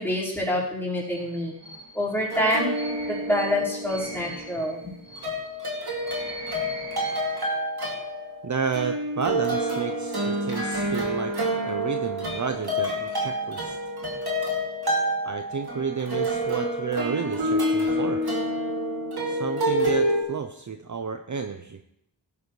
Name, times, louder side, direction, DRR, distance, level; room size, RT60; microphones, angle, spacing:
voice 1, 0.0-1.5 1.9-2.7 3.1-4.8, left 1 dB, 5° left, -7 dB, 4.8 m, -26 dB
sound 1, 1.1-7.5, right 1 dB, 85° right, 1.8 m, -42 dB
sound 2, 2.3-4.8 5.2-20.2, equal, 60° right, 2.6 m, -28 dB
voice 2, 8.4-13.8 15.2-18.2 19.3-21.8, right 5 dB, 45° right, 7 dB, 0.7 m, -31 dB
17.0 x 9.7 x 3.2 m, 0.77 s
wide cardioid pair, 70°, 42 cm